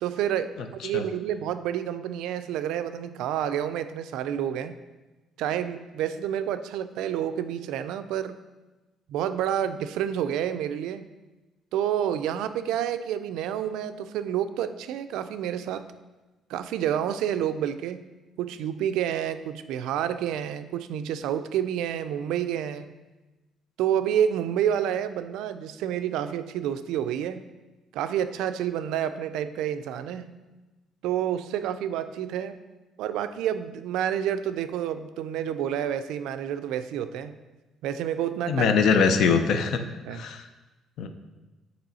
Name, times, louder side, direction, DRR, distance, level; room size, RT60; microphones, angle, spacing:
voice 1, 0.0-0.6 0.8-4.8 5.4-8.4 9.1-11.1 11.7-15.8 16.5-18.0 18.4-22.9 23.8-27.4 27.9-30.3 31.0-32.6 33.0-37.3 37.8-38.7 40.1-40.2, right 10 dB, 80° right, 11 dB, 0.3 m, -29 dB
voice 2, 38.5-39.8 40.1-40.5 41.0-41.1, left 5 dB, 55° left, 8 dB, 0.5 m, -22 dB
8.8 x 3.0 x 4.1 m, 1.1 s
cardioid pair, 175°, 0 cm